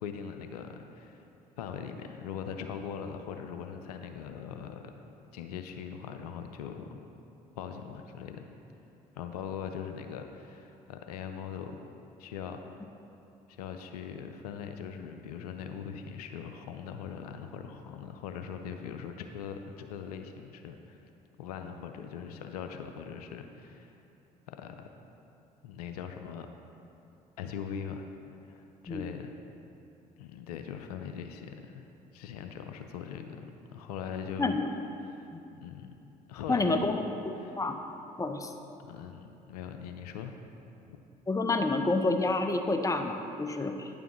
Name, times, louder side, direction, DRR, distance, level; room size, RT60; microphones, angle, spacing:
voice 1, 0.0-1.3 1.6-4.9 5.3-7.0 7.6-8.5 9.2-11.8 12.2-12.6 13.5-21.0 21.4-24.0 24.5-24.9 25.6-26.5 27.4-29.3 30.2-31.9 32.1-34.5 35.0-35.9 36.3-36.9 37.4-37.6 38.8-40.3, left 7 dB, 80° left, 6 dB, 0.4 m, -41 dB
voice 2, 36.5-37.0 37.6-37.8 38.2-38.5 41.3-43.9, left 2 dB, 15° left, 6 dB, 0.7 m, -28 dB
9.7 x 6.9 x 3.1 m, 2.9 s
hypercardioid pair, 50°, 19 cm